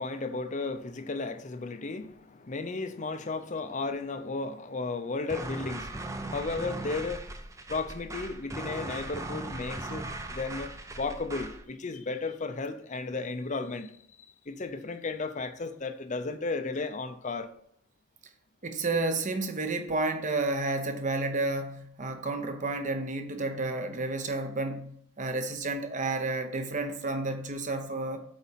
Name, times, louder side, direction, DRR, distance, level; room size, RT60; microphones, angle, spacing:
voice 1, 0.0-7.2 7.7-10.7 11.0-14.0 14.5-17.5, left 3 dB, 35° left, 0.6 m, -34 dB
sound 1, 5.3-11.6, right 2 dB, 15° right, 0.5 m, -38 dB
voice 2, 18.6-28.2, right 2 dB, 35° right, 0.9 m, -31 dB
8.3 x 4.2 x 5.7 m
head